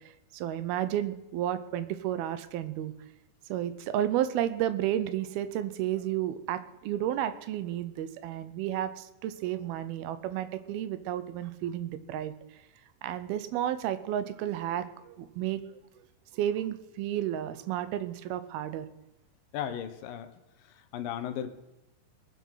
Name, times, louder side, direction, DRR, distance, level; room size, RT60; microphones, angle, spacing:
voice 1, 0.0-2.9 3.5-12.3 13.0-15.6 16.3-18.9, right 11 dB, 90° right, 12 dB, 2.7 m, -32 dB
voice 2, 19.5-20.3 20.9-21.5, left 9 dB, 75° left, 10 dB, 2.5 m, -35 dB
21.5 x 7.6 x 5.6 m, 0.97 s
omnidirectional pair, 4.3 m